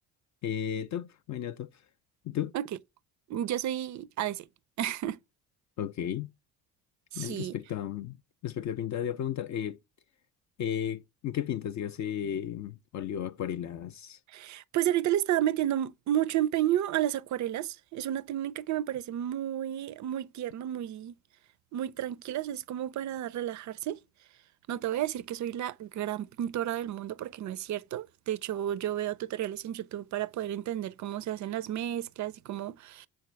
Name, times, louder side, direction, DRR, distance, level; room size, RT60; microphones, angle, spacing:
voice 1, 0.4-1.7 2.2-2.5 5.8-6.3 7.1-8.2 8.4-9.8 10.6-14.2, left 9 dB, 40° left, 0.4 m, -34 dB
voice 2, 3.3-4.5 4.8-5.2 7.1-7.6 14.3-21.2 21.7-24.0 24.7-33.1, right 12 dB, 40° right, 0.5 m, -32 dB
6.9 x 4.2 x 3.3 m
hypercardioid pair, 55°, 50 cm